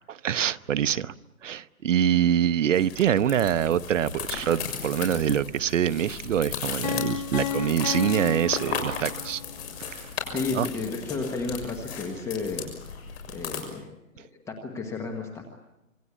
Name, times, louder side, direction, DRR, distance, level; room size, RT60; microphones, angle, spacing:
voice 1, 0.1-1.1 1.4-9.4 9.8-10.1 10.5-10.7, right 9 dB, 60° right, 13 dB, 0.9 m, -25 dB
sound 1, 2.7-13.6, left 6 dB, 45° left, 6.7 m, -36 dB
Piano, 6.8-9.6, left 10 dB, 30° left, 1.0 m, -32 dB
voice 2, 10.3-15.6, left 3 dB, 5° left, 3 dB, 1.2 m, -33 dB
26.5 x 23.5 x 8.5 m, 0.86 s
hypercardioid pair, 165°, 42 cm